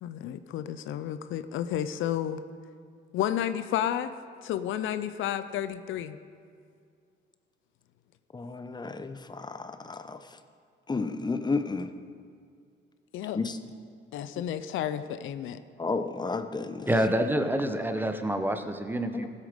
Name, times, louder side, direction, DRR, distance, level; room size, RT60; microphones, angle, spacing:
voice 1, 0.0-2.4 3.1-4.1 4.4-6.2 13.1-13.4 14.1-15.6, left 10 dB, 80° left, 12 dB, 0.5 m, -31 dB
voice 2, 8.3-10.2 10.9-11.9 13.3-13.6 15.8-16.9 19.1-19.3, left 4 dB, 20° left, 10 dB, 0.7 m, -32 dB
voice 3, 16.9-19.3, right 1 dB, 10° right, 7 dB, 0.9 m, -27 dB
15.0 x 8.3 x 5.2 m, 2.2 s
cardioid pair, 90°, 20 cm